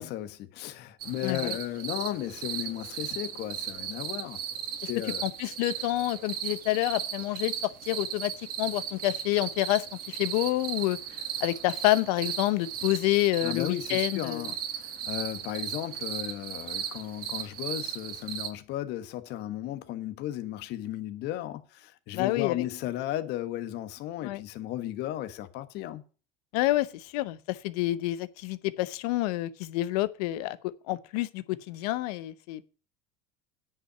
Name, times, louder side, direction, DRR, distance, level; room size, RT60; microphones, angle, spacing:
voice 1, 0.0-4.4 4.9-5.2 13.4-14.6 14.8-26.0, left 13 dB, 60° left, 1.4 m, -35 dB
sound 1, 1.0-18.5, right 9 dB, 50° right, 1.6 m, -36 dB
voice 2, 1.2-1.6 5.2-7.5 7.9-8.3 8.6-11.0 11.4-14.5 22.1-22.6 24.2-24.4 26.5-32.6, left 17 dB, 75° left, 0.9 m, -28 dB
9.7 x 5.7 x 8.1 m
supercardioid pair, 105°, 20 cm